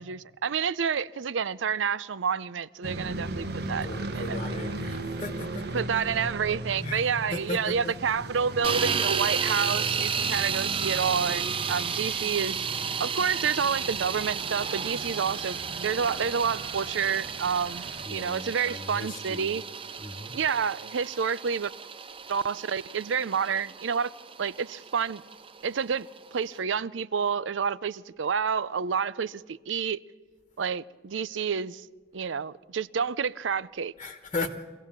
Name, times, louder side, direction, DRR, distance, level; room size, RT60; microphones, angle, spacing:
voice 1, 0.0-3.9 4.2-4.7 5.7-12.6 13.0-15.6 15.8-17.8 18.1-19.6 20.3-21.7 22.3-24.1 24.4-25.2 25.6-30.0 30.6-31.8 32.1-33.9, right 6 dB, 85° right, 0.5 m, -29 dB
sound 1, 2.8-18.1, right 2 dB, 60° right, 1.1 m, -38 dB
voice 2, 3.7-5.8 6.8-7.0 7.3-7.9 18.0-19.6 20.0-20.4 34.0-34.5, left 2 dB, 30° left, 1.3 m, -37 dB
sound 2, 8.6-26.6, right 6 dB, 30° right, 0.6 m, -33 dB
24.0 x 16.5 x 7.4 m
head